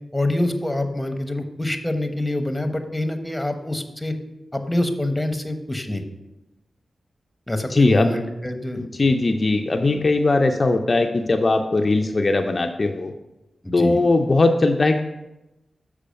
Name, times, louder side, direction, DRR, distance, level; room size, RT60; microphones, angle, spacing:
voice 1, 0.1-4.1 4.5-6.0 7.5-8.9 13.6-14.0, left 1 dB, 10° left, 7 dB, 1.0 m, -25 dB
voice 2, 7.7-8.1 8.8-13.1 13.7-15.0, left 2 dB, 45° left, 4 dB, 0.5 m, -19 dB
6.7 x 4.9 x 5.1 m, 0.98 s
cardioid pair, 45°, 0 cm